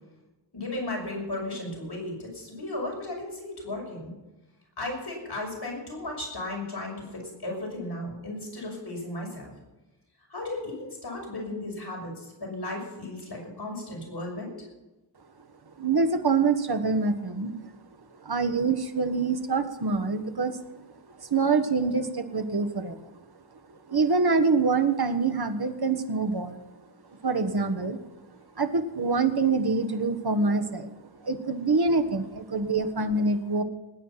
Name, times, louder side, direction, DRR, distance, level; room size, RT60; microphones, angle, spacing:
voice 1, 0.5-4.1 4.8-9.5 10.3-14.6 31.9-32.0, left 2 dB, 55° left, -1 dB, 6.0 m, -35 dB
voice 2, 15.8-17.5 18.2-20.6 21.2-23.1 23.7-26.6 27.2-28.0 28.6-30.9 31.2-33.6, right 4 dB, 55° right, 7 dB, 1.5 m, -25 dB
20.0 x 9.6 x 5.8 m, 1.1 s
wide cardioid pair, 65°, 46 cm